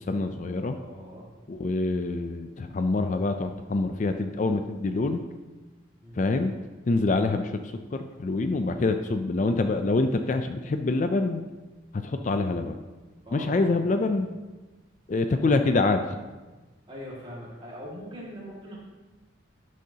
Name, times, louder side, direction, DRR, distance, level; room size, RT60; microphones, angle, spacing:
voice 1, 0.1-0.8 1.5-5.2 6.1-6.5 6.9-7.6 7.9-11.4 11.9-12.8 13.3-14.3 15.1-16.1, left 3 dB, 40° left, 7 dB, 0.4 m, -25 dB
voice 2, 0.7-1.3 6.0-6.2 13.3-14.2 16.9-18.8, equal, 25° right, -5 dB, 2.0 m, -41 dB
12.0 x 6.3 x 2.8 m, 1.2 s
head